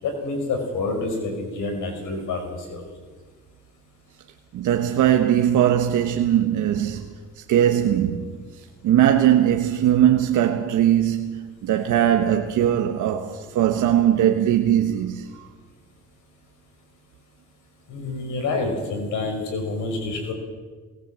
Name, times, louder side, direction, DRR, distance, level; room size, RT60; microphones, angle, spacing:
voice 1, 0.0-2.9 17.9-20.3, left 3 dB, 80° left, 5.5 m, -28 dB
voice 2, 4.5-7.1 7.4-8.4 8.8-15.5, right 10 dB, 85° right, 1.3 m, -20 dB
20.5 x 18.5 x 7.7 m
cardioid pair, 90°, 30 cm